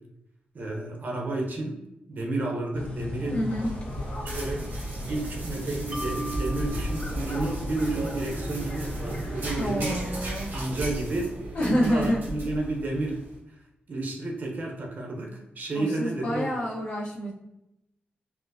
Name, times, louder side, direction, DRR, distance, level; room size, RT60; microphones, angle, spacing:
voice 1, 0.5-1.8 2.1-3.4 4.2-4.6 5.0-10.1 10.5-11.3 11.6-13.2 13.9-16.5, right 2 dB, 55° right, 0 dB, 0.8 m, -31 dB
sound 1, 2.7-10.3, left 1 dB, 40° left, 1.2 m, -37 dB
voice 2, 3.3-3.7 9.6-10.5 11.5-12.2 15.7-17.3, equal, 75° left, -11 dB, 0.9 m, -27 dB
sound 2, 3.3-13.3, right 1 dB, 70° right, 1.2 m, -35 dB
Mallet percussion, 5.9-9.2, right 2 dB, 15° right, 0.5 m, -38 dB
4.3 x 2.0 x 2.7 m, 0.87 s
cardioid pair, 85°, 4 cm